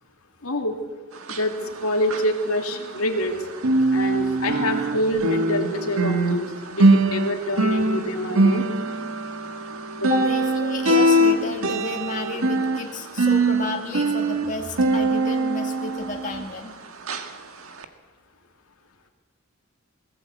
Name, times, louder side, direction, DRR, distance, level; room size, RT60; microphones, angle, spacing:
voice 1, 0.4-0.7 1.3-1.5 1.8-3.3 3.9-8.7 10.0-10.2, left 1 dB, 85° left, 3 dB, 2.4 m, -26 dB
sound 1, 1.2-3.3 3.6-16.7 17.1-17.3 17.8-17.9, right 2 dB, 75° right, 1.6 m, -22 dB
voice 2, 10.2-16.7, left 2 dB, 35° left, 1 dB, 2.2 m, -32 dB
21.0 x 16.5 x 8.2 m, 1.4 s
head